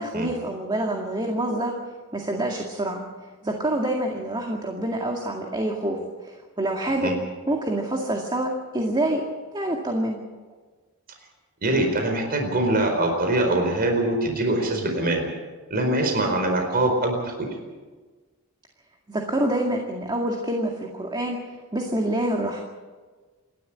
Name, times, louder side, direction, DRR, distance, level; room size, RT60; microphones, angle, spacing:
voice 1, 0.0-1.7 2.1-3.0 3.4-7.1 7.5-9.2 9.5-10.2 19.1-21.4 21.7-22.6, right 1 dB, 20° right, 1 dB, 2.1 m, -26 dB
voice 2, 11.6-15.3 15.7-17.5, right 1 dB, 45° right, 3 dB, 4.6 m, -23 dB
28.0 x 12.5 x 8.5 m, 1.4 s
head